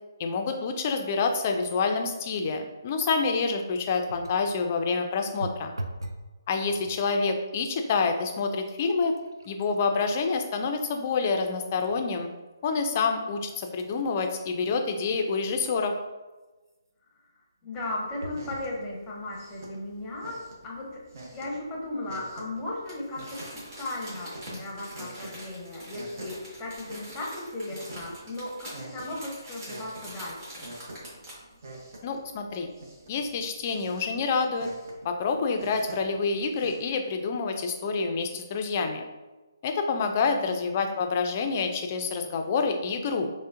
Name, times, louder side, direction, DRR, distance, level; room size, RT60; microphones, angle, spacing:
voice 1, 0.2-5.7 6.5-9.1 9.5-12.3 12.6-16.0 32.0-32.7 33.1-34.7 35.0-39.0 39.6-43.3, left 4 dB, 30° left, 5 dB, 0.4 m, -27 dB
sound 1, 4.1-4.5 5.4-6.3 6.7-7.2 7.9-8.0 8.4-12.0 12.5-12.6 13.3-16.0 18.2-18.7 19.4-19.5 19.8-19.9, right 1 dB, 75° right, 0.4 m, -43 dB
voice 2, 17.6-21.0 21.3-30.7 40.3-40.6, left 2 dB, 10° left, -3 dB, 0.8 m, -36 dB
sound 2, 17.7-36.8, right 1 dB, 45° right, 0.8 m, -47 dB
Crumpling crinkling, 22.9-31.5 32.0-32.1, equal, 25° right, 1.4 m, -44 dB
6.0 x 2.1 x 2.5 m, 1.2 s
figure-of-eight pair, 140°, 2 cm